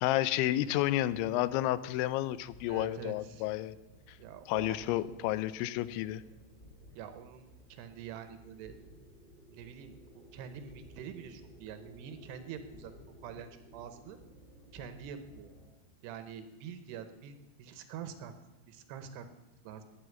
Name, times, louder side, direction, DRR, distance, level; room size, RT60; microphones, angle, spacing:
voice 1, 0.0-3.8 4.5-6.2, left 14 dB, 90° left, 16 dB, 3.0 m, -31 dB
sound 1, 0.7-15.7, equal, 15° left, 1.9 m, -57 dB
voice 2, 2.7-3.4 4.2-5.0 7.0-8.7 9.5-12.9 13.2-14.2 14.7-15.5 16.0-18.3 18.7-19.3 19.6-19.8, right 8 dB, 75° right, 10 dB, 2.8 m, -46 dB
11.5 x 9.6 x 9.5 m, 1.1 s
omnidirectional pair, 5.2 m